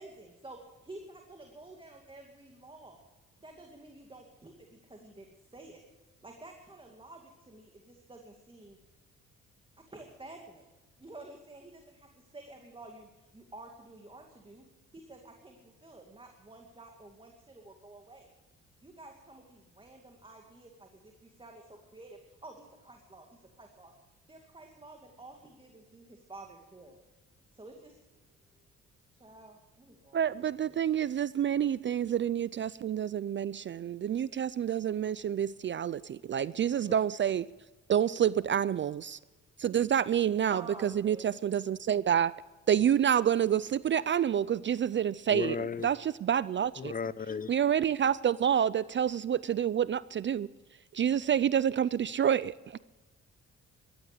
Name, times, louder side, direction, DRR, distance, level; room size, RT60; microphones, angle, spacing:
voice 1, 0.0-3.0 3.4-5.8 6.2-8.8 9.9-10.7 11.0-14.6 14.9-18.3 18.8-23.9 24.3-27.0 27.5-27.9 29.1-31.2 40.5-41.3, right 2 dB, 15° right, 2 dB, 2.3 m, -51 dB
voice 2, 30.1-37.5 37.9-39.2 39.6-42.3 42.7-45.6 45.8-46.9 47.5-50.5 50.9-52.8, right 9 dB, 40° right, 19 dB, 0.4 m, -28 dB
voice 3, 45.3-45.9 46.8-47.5, left 5 dB, 30° left, 17 dB, 0.7 m, -34 dB
14.5 x 12.0 x 6.7 m, 1.2 s
cardioid pair, 90°, 30 cm